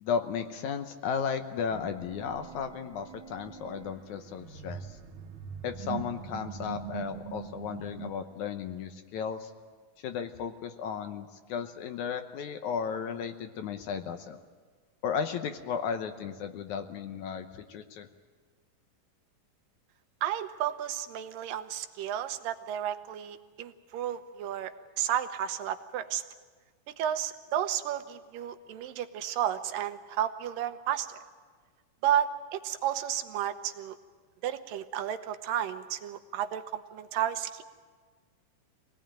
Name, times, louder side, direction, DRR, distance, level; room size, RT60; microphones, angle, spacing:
voice 1, 0.0-4.9 5.6-9.5 10.0-14.4 15.0-18.1, left 7 dB, 70° left, 7 dB, 2.2 m, -34 dB
sound 1, 1.7-8.1, right 7 dB, 45° right, 2.3 m, -42 dB
voice 2, 20.2-24.7 25.0-26.2 27.0-31.1 32.0-34.0 34.4-37.6, right 10 dB, 80° right, 9 dB, 2.7 m, -32 dB
24.5 x 18.5 x 9.0 m, 1.5 s
omnidirectional pair, 3.9 m